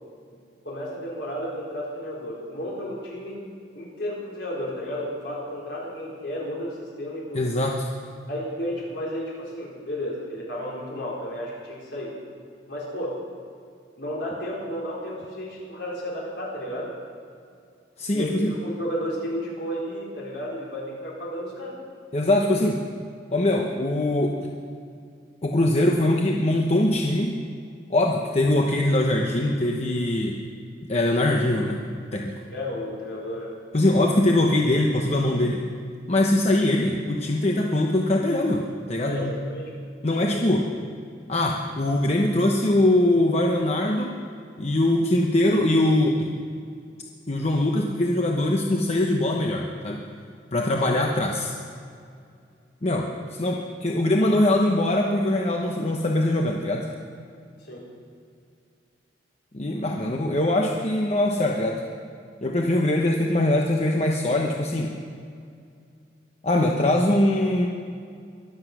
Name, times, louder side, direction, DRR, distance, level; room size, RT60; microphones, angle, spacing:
voice 1, 0.6-3.4 3.7-7.5 8.3-12.2 12.7-13.2 14.0-16.9 18.1-21.8 32.5-33.5 39.0-39.7 40.0-40.5 50.8-51.0 57.6-57.9, equal, 65° left, -4 dB, 4.4 m, -33 dB
voice 2, 7.3-7.9 18.0-18.6 22.1-22.8 23.3-24.5 25.4-27.4 27.9-30.4 30.9-31.8 32.1-32.4 33.7-35.6 36.1-39.3 40.0-40.7 41.3-44.2 44.6-46.3 47.3-50.0 50.5-51.5 52.8-56.9 59.5-61.8 62.4-65.0 66.4-67.7, left 1 dB, 35° left, 0 dB, 0.9 m, -22 dB
22.5 x 8.0 x 6.1 m, 2.3 s
head